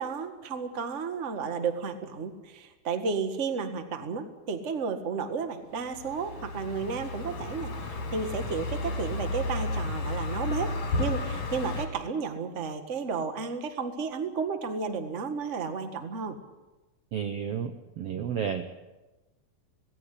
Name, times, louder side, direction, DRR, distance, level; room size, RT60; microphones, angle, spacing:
voice 1, 0.0-10.7 11.0-16.4, right 5 dB, 35° right, 7 dB, 1.3 m, -32 dB
Car passing by, 5.8-11.9, left 2 dB, 65° left, 4.9 m, -32 dB
voice 2, 17.1-18.7, right 8 dB, 65° right, 8 dB, 1.6 m, -32 dB
18.0 x 17.0 x 10.0 m, 1.1 s
omnidirectional pair, 3.8 m